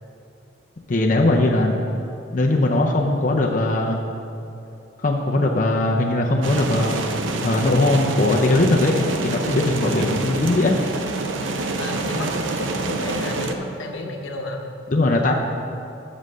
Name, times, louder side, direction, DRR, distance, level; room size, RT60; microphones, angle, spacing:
voice 1, 0.9-1.9 2.3-4.0 5.0-7.1 7.4-10.8 14.9-15.3, left 2 dB, 40° left, 0 dB, 0.6 m, -20 dB
sound 1, 6.4-13.5, right 2 dB, 80° right, 0.6 m, -27 dB
voice 2, 11.7-14.7, left 1 dB, 80° left, 3 dB, 0.9 m, -32 dB
7.4 x 6.2 x 6.5 m, 2.7 s
head